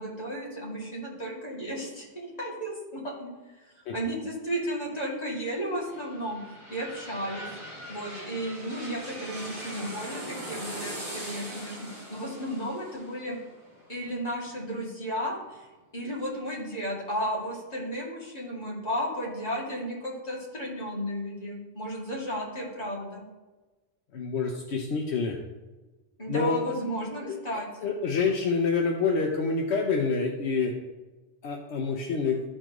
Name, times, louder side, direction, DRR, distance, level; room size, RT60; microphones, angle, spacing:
voice 1, 0.0-3.3 3.9-6.4 6.7-7.5 7.9-11.8 12.1-13.4 13.9-15.7 15.9-23.3 26.2-27.7, equal, 35° left, -5 dB, 2.5 m, -34 dB
sound 1, 5.5-15.1 15.5-15.6, equal, 25° right, 2.6 m, -41 dB
voice 2, 24.1-25.4 26.3-26.7 27.2-30.7 31.4-32.4, left 4 dB, 80° left, 2 dB, 1.0 m, -27 dB
13.0 x 4.4 x 3.0 m, 1.2 s
omnidirectional pair, 1.1 m